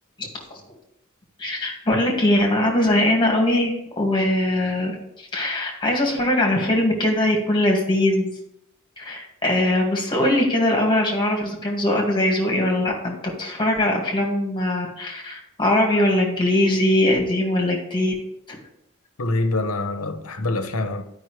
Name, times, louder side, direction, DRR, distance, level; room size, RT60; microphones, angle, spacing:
voice 1, 1.4-4.9 5.3-8.3 9.0-18.1, left 1 dB, 20° left, 1.9 m, -21 dB
voice 2, 19.2-21.0, left 2 dB, 75° left, 0.9 m, -25 dB
12.0 x 5.4 x 3.2 m
head